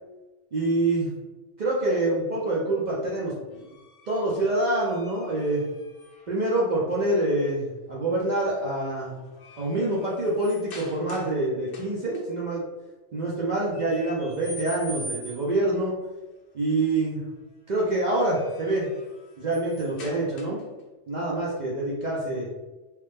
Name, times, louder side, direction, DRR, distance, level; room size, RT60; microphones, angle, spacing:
voice 1, 0.5-1.1 1.6-3.7 4.1-5.6 6.3-9.2 9.6-12.7 13.1-16.0 16.5-17.2 17.7-18.9 19.4-20.6 21.1-22.5, right 2 dB, 55° right, -5 dB, 0.5 m, -26 dB
sound 1, 3.5-6.4 8.2-8.6 9.0-11.4 11.7-12.2 13.7-15.6 17.9-20.8, left 1 dB, 60° left, 0.7 m, -44 dB
3.1 x 2.1 x 3.2 m, 1.2 s
omnidirectional pair, 1.2 m